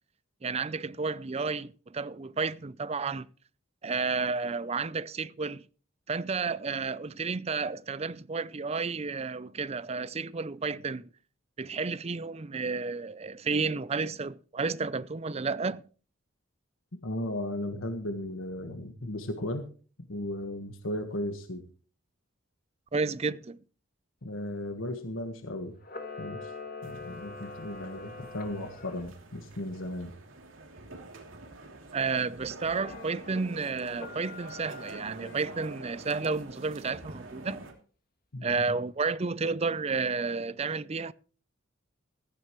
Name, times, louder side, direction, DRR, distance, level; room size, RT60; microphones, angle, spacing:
voice 1, 0.4-3.3 3.8-5.6 6.1-11.1 11.6-15.8 22.9-23.6 31.9-37.7 38.4-41.1, right 4 dB, 30° right, 0.5 m, -31 dB
voice 2, 17.0-19.7 20.1-21.6 24.2-25.8 26.2-26.5 26.8-30.1 38.3-38.5, left 1 dB, 90° left, 1.5 m, -35 dB
Camera, 25.8-29.1 32.7-33.4 33.9-35.8, left 3 dB, 45° left, 2.1 m, -44 dB
sound 1, 26.8-37.7, right 2 dB, 80° right, 3.0 m, -47 dB
15.5 x 14.0 x 3.1 m
head